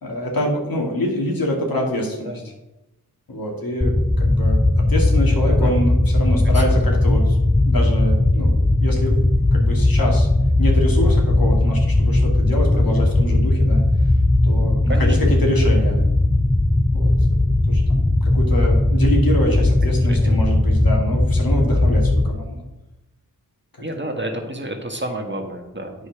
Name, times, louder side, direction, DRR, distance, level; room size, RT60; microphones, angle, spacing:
voice 1, 0.0-2.4 3.3-7.4 7.6-9.2 9.5-10.3 10.6-13.8 14.4-16.0 16.9-17.1 17.7-22.6, equal, 65° left, -1 dB, 2.4 m, -25 dB
sound 1, 3.8-22.3, left 2 dB, 5° left, 0.4 m, -17 dB
voice 2, 6.4-7.0 14.9-15.4 20.1-20.4 23.8-26.1, right 1 dB, 30° right, 3 dB, 1.6 m, -30 dB
8.2 x 5.0 x 5.9 m, 0.97 s
cardioid pair, 45°, 38 cm